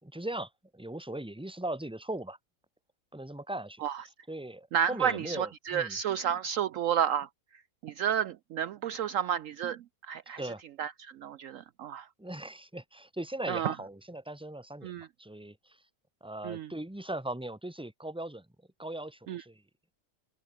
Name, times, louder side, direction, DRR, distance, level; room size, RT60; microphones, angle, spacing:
voice 1, 0.0-2.4 3.1-3.8 4.3-6.0 10.4-10.6 12.2-15.8 16.2-18.5 18.8-19.6, right 1 dB, 5° right, 1.9 m, -39 dB
voice 2, 4.7-7.3 7.8-10.4 10.8-12.1 13.5-13.8 14.8-15.1 16.4-16.7 19.3-19.4, right 9 dB, 65° right, 0.9 m, -31 dB
open air
omnidirectional pair, 1.6 m